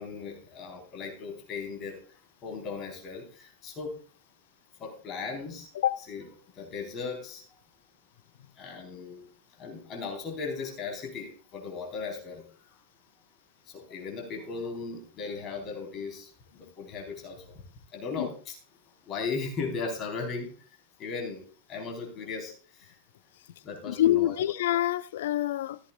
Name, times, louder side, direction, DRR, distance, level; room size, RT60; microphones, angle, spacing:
voice 1, 0.0-2.0 2.4-3.9 4.8-5.7 6.0-6.3 6.6-7.4 8.6-9.3 9.6-12.4 13.7-17.6 17.9-18.6 19.1-20.5 21.0-21.4 21.7-23.0 23.6-24.4, left 4 dB, 30° left, 3.9 m, -37 dB
voice 2, 23.9-25.8, left 13 dB, 55° left, 0.5 m, -26 dB
15.5 x 14.5 x 2.3 m
figure-of-eight pair, 90°, 0 cm